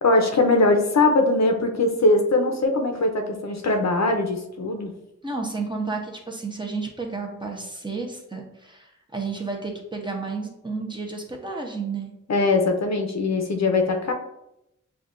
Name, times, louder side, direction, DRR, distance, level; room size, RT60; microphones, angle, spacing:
voice 1, 0.0-4.9 12.3-14.1, left 2 dB, 55° left, 4 dB, 0.7 m, -21 dB
voice 2, 5.2-12.1, right 4 dB, 15° right, 0 dB, 0.8 m, -31 dB
7.1 x 2.4 x 2.5 m, 0.83 s
wide cardioid pair, 80°, 32 cm